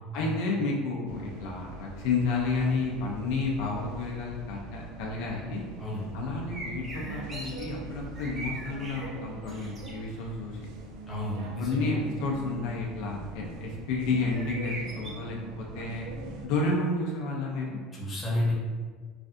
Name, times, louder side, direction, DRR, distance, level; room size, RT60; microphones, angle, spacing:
voice 1, 0.1-5.6 6.1-10.6 11.6-15.4 15.7-16.1 16.4-17.8, left 3 dB, 75° left, -2 dB, 0.5 m, -31 dB
sound 1, 1.1-16.5, right 3 dB, 75° right, 0.4 m, -43 dB
sound 2, 6.5-7.7 8.0-9.1 9.4-9.9 14.2-15.1, right 2 dB, 25° right, 0.7 m, -40 dB
voice 2, 11.1-11.9 17.9-18.5, left 1 dB, 15° left, -6 dB, 0.9 m, -31 dB
3.2 x 2.5 x 2.5 m, 1.5 s
cardioid pair, 140°, 0 cm